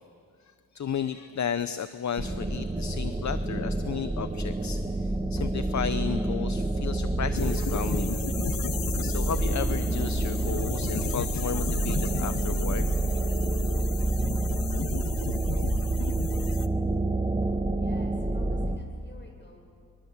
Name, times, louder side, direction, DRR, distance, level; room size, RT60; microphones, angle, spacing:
voice 1, 0.7-8.2 9.0-12.9, left 7 dB, 55° left, 12 dB, 0.7 m, -33 dB
sound 1, 2.2-18.8, right 2 dB, 15° right, 1.6 m, -28 dB
sound 2, 7.4-16.7, left 8 dB, 85° left, 0.9 m, -36 dB
voice 2, 17.8-19.6, left 1 dB, 35° left, 1 dB, 7.4 m, -51 dB
25.5 x 23.0 x 7.4 m, 2.4 s
cardioid pair, 75°, 33 cm